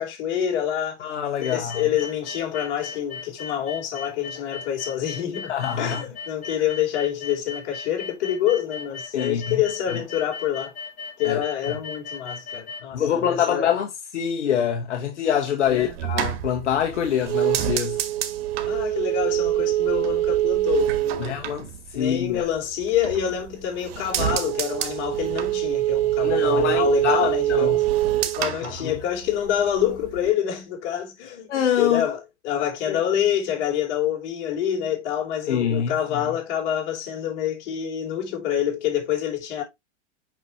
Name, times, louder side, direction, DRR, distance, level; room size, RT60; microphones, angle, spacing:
voice 1, 0.0-1.0 1.4-10.7 11.2-13.7 15.7-15.9 18.7-21.4 21.9-27.9 28.4-31.5 31.8-39.6, left 10 dB, 50° left, 3.6 m, -27 dB
voice 2, 1.0-1.8 5.4-6.0 9.1-9.6 11.2-11.4 12.9-13.9 14.1-18.0 21.2-21.7 21.9-22.5 26.2-27.2 27.5-27.8 28.6-29.0 31.5-32.1 32.9-33.0 35.5-35.9, left 8 dB, 85° left, 1.5 m, -25 dB
sound 1, 1.4-12.8, left 5 dB, 20° left, 1.3 m, -37 dB
sound 2, 15.7-22.5 22.8-23.5 23.8-29.5 29.8-30.3, right 14 dB, 60° right, 1.3 m, -24 dB
6.2 x 5.9 x 2.9 m
hypercardioid pair, 140°, 35 cm